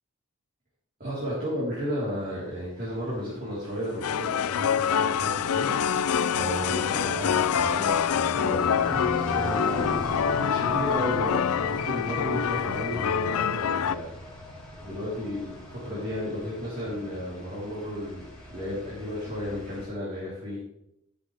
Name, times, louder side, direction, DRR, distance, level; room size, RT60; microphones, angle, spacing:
voice 1, 1.0-6.0 6.3-9.9 10.4-14.1 14.8-20.6, equal, 40° right, -8 dB, 4.1 m, -33 dB
Bundesstraße Street, 3.2-19.8, left 1 dB, 5° left, 4.4 m, -38 dB
sound 1, 3.9-14.0, left 8 dB, 80° left, 0.4 m, -26 dB
14.0 x 10.0 x 3.5 m, 0.81 s
head